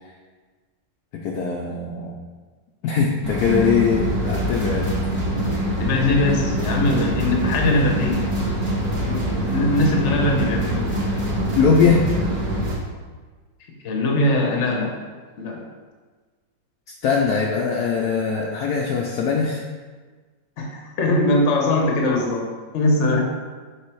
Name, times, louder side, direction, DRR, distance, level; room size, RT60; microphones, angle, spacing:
voice 1, 1.1-2.1 2.8-5.0 11.5-12.1 17.0-19.6, left 5 dB, 70° left, -1 dB, 1.0 m, -21 dB
sound 1, 3.2-12.8, right 1 dB, 35° right, 1.5 m, -24 dB
voice 2, 5.8-8.4 9.0-11.0 13.8-15.0 15.4-15.6 20.6-23.2, left 1 dB, 50° left, 1 dB, 1.0 m, -21 dB
6.4 x 3.4 x 4.6 m, 1.4 s
omnidirectional pair, 2.1 m